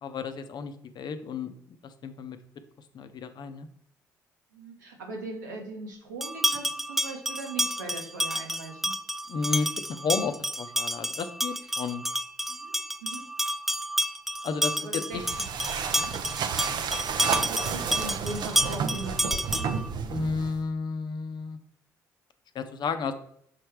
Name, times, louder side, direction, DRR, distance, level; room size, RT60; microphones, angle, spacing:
voice 1, 0.0-2.4 2.9-3.7 9.3-12.0 14.4-15.3 15.9-16.1 20.1-21.6 22.5-23.1, left 5 dB, 50° left, 9 dB, 0.7 m, -32 dB
voice 2, 4.5-8.9 12.5-12.7 13.0-13.2 14.7-15.2 17.3-19.5, right 2 dB, 80° right, 1 dB, 1.3 m, -39 dB
sound 1, 6.2-19.9, equal, 5° right, 0.3 m, -30 dB
sound 2, 15.1-20.7, right 6 dB, 50° right, 0.6 m, -31 dB
6.6 x 4.4 x 4.6 m, 0.68 s
figure-of-eight pair, 45°, 10 cm